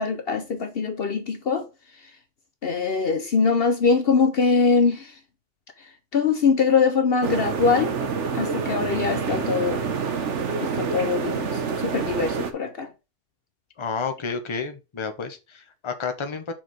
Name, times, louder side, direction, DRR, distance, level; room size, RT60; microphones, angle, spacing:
voice 1, 0.0-1.7 2.6-5.2 5.8-8.0 8.3-9.8 10.6-12.9, left 5 dB, 55° left, 1.0 m, -23 dB
sound 1, 7.2-12.5, right 5 dB, 70° right, 1.3 m, -27 dB
voice 2, 13.8-16.5, left 5 dB, 25° left, 0.9 m, -30 dB
5.8 x 4.8 x 4.7 m
omnidirectional pair, 1.3 m